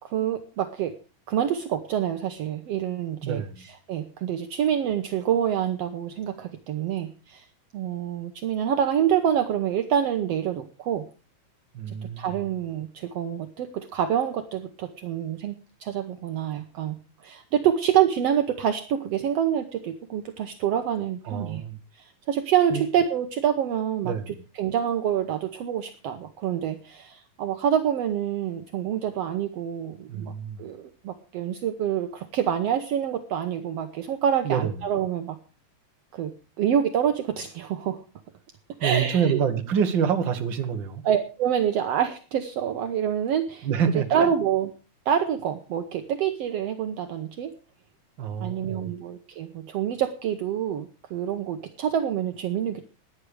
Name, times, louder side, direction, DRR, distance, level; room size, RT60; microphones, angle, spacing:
voice 1, 0.0-0.9 1.3-7.4 7.7-11.1 12.2-15.5 15.8-21.6 22.0-30.3 30.6-35.4 36.1-38.0 38.8-39.4 41.0-43.7 44.1-44.7 45.1-47.5 48.4-52.8, right 9 dB, 75° right, 6 dB, 1.5 m, -27 dB
voice 2, 3.2-3.7 11.7-12.4 21.2-21.8 22.7-22.8 24.0-24.4 30.1-30.7 34.4-34.7 38.8-41.0 43.6-44.3 48.2-48.9, right 7 dB, 45° right, 6 dB, 1.6 m, -27 dB
15.5 x 10.5 x 4.9 m, 0.36 s
omnidirectional pair, 4.1 m